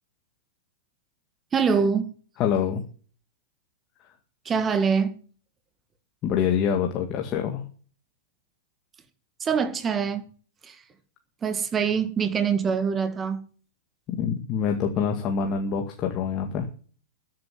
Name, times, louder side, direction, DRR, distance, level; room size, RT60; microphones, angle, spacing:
voice 1, 1.5-2.1 4.5-5.1 9.4-10.2 10.6-10.8 11.4-13.4, right 6 dB, 20° right, 1.8 m, -24 dB
voice 2, 2.4-2.8 6.2-7.6 14.1-16.7, left 7 dB, 35° left, 1.9 m, -25 dB
13.5 x 7.7 x 7.6 m
hypercardioid pair, 115°, 0 cm